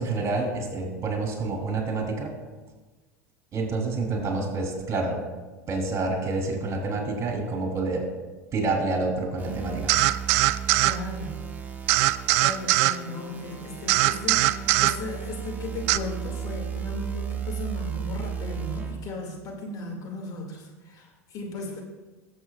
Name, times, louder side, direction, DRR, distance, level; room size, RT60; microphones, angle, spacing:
voice 1, 0.0-2.3 3.5-5.2 5.7-8.1 8.5-9.9, right 3 dB, 35° right, 2 dB, 3.0 m, -28 dB
sound 1, 9.4-19.1, right 7 dB, 20° right, 1.3 m, -35 dB
sound 2, 9.9-11.0 11.9-13.0 13.9-15.0 15.9-16.0, right 17 dB, 60° right, 0.3 m, -21 dB
voice 2, 10.7-11.5 12.4-21.8, left 2 dB, 45° left, 0 dB, 2.3 m, -36 dB
19.0 x 7.5 x 2.4 m, 1.2 s
hypercardioid pair, 80°, 9 cm